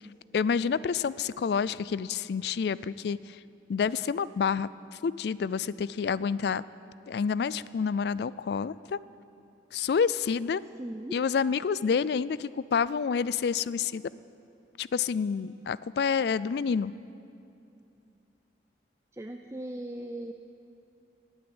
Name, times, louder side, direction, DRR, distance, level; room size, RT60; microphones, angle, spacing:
voice 1, 0.3-3.4 3.7-4.7 5.0-6.6 7.1-9.0 9.7-10.6 11.1-14.0 14.8-16.9, left 6 dB, 60° left, 19 dB, 0.3 m, -28 dB
voice 2, 10.8-11.1 19.1-20.3, right 1 dB, 15° right, 4 dB, 0.5 m, -38 dB
18.5 x 9.2 x 7.9 m, 2.7 s
head